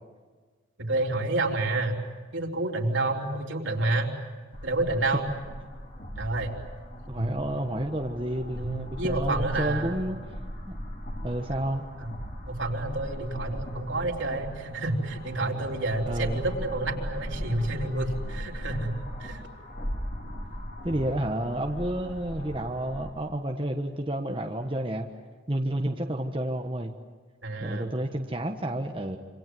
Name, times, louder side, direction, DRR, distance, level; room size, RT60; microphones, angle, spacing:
voice 1, 0.8-2.0 2.3-4.1 4.6-5.2 6.2-6.6 7.2-7.3 8.5-10.0 12.0-12.1 12.5-18.9 19.2-19.4 27.4-27.9, right 2 dB, 70° right, 0 dB, 3.7 m, -29 dB
sound 1, 4.5-23.1, equal, 45° left, 5.2 m, -38 dB
voice 2, 7.1-10.2 10.7-10.8 11.2-11.8 16.1-16.4 20.8-25.1 25.5-26.9 27.6-29.2, right 1 dB, 25° right, 2 dB, 1.3 m, -30 dB
27.0 x 26.5 x 7.8 m, 1.4 s
head